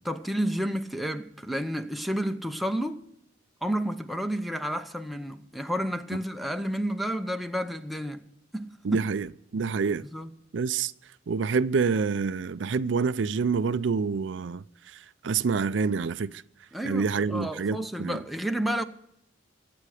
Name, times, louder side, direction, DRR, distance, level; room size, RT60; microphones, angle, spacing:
voice 1, 0.0-3.0 3.6-8.2 8.5-9.0 10.1-10.3 16.7-18.8, equal, ahead, 0.7 m, -31 dB
voice 2, 8.8-9.3 9.5-10.0 10.5-10.9 11.3-14.6 14.9-15.0 15.2-16.4 16.8-18.2, right 5 dB, 70° right, 0.4 m, -27 dB
23.0 x 8.6 x 5.0 m
head